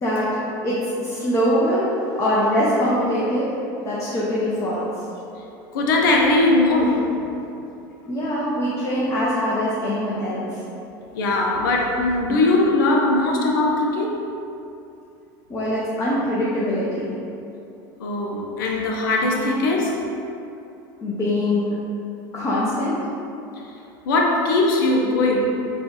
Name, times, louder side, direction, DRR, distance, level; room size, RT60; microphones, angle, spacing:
voice 1, 0.6-3.5 3.8-4.9 8.1-10.6 15.5-17.1 21.0-21.7 22.3-23.0, equal, 30° left, -8 dB, 0.7 m, -23 dB
voice 2, 5.7-7.3 11.1-14.2 18.0-20.0 23.6-23.7 24.1-25.5, left 2 dB, 85° left, -1 dB, 0.5 m, -20 dB
3.9 x 2.3 x 3.2 m, 2.7 s
supercardioid pair, 115°, 11 cm